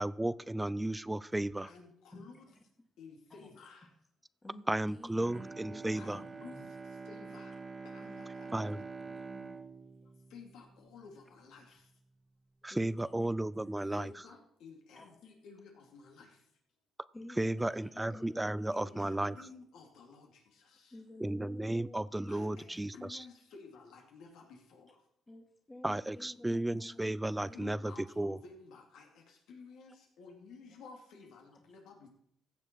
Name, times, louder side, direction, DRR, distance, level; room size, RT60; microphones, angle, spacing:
voice 1, 0.0-1.7 4.7-6.2 8.5-8.8 12.6-14.1 17.4-19.4 21.2-23.2 25.8-28.4, right 1 dB, 10° right, 19 dB, 0.4 m, -34 dB
voice 2, 1.6-2.5 3.0-3.9 5.9-6.6 6.8-7.6 7.8-8.7 10.0-11.9 14.0-16.5 18.7-21.0 22.3-25.1 27.5-32.1, left 4 dB, 85° left, 2 dB, 2.6 m, -54 dB
voice 3, 2.1-2.6 3.3-3.5 4.4-5.2 5.7-6.7 8.0-8.2 9.1-9.6 12.7-14.1 14.9-15.1 17.1-19.3 20.9-22.8 25.3-27.7 31.6-31.7, left 1 dB, 20° left, 2 dB, 2.0 m, -52 dB
Bowed string instrument, 5.1-11.3 11.8-11.9, right 4 dB, 25° right, 1.0 m, -46 dB
15.5 x 7.1 x 4.6 m, 0.72 s
cardioid pair, 90°, 0 cm